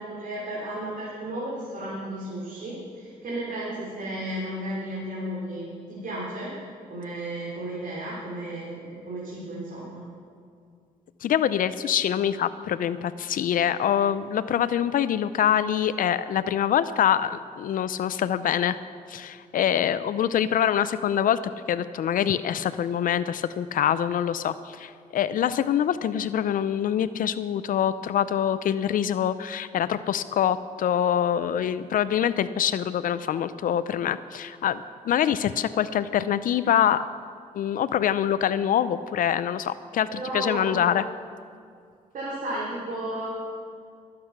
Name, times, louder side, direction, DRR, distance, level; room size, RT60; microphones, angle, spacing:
voice 1, 0.0-6.5 6.9-10.1 40.1-40.9 42.1-43.3, right 1 dB, 65° right, -6 dB, 3.7 m, -33 dB
voice 2, 11.2-18.8 19.1-21.4 21.7-37.1 37.5-41.0, left 9 dB, 70° left, 14 dB, 0.5 m, -25 dB
20.0 x 8.6 x 5.9 m, 2.3 s
cardioid pair, 85°, 15 cm